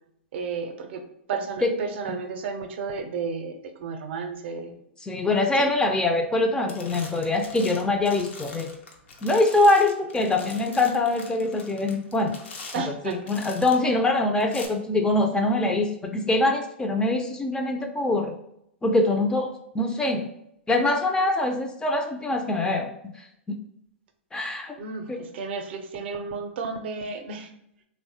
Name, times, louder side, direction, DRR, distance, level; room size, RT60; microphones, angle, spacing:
voice 1, 0.3-1.0 1.3-4.8 5.6-5.7 12.7-13.2 24.8-27.5, right 5 dB, 65° right, 6 dB, 0.5 m, -32 dB
voice 2, 5.0-8.7 9.2-12.4 13.0-18.3 18.8-20.2 20.7-22.9 24.3-24.8 25.1-25.2, left 2 dB, 10° left, 4 dB, 0.3 m, -23 dB
sound 1, 6.2-6.4 6.7-13.9 14.4-14.7, left 4 dB, 75° left, 0.6 m, -43 dB
3.0 x 2.1 x 2.7 m, 0.74 s
hypercardioid pair, 110°, 6 cm